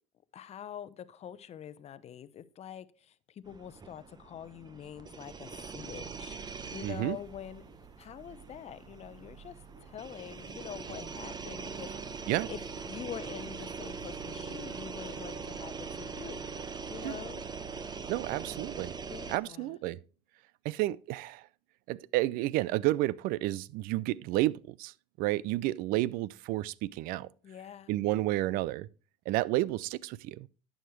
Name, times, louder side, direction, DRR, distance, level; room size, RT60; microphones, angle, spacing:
voice 1, 0.3-6.4 6.7-7.7 8.0-12.2 12.5-16.5 16.9-17.4 19.1-19.8 27.4-27.9, left 9 dB, 40° left, 0.8 m, -45 dB
sound 1, 3.5-19.4, right 5 dB, 25° right, 0.9 m, -42 dB
sound 2, 6.7-15.4, right 2 dB, 45° right, 2.5 m, -60 dB
voice 2, 6.8-7.2 12.3-12.5 17.0-17.1 18.1-18.9 19.3-20.0 20.6-21.5 21.9-27.3 27.9-28.9 29.3-30.5, right 17 dB, 60° right, 0.5 m, -31 dB
11.0 x 7.9 x 3.2 m
hypercardioid pair, 75°, 16 cm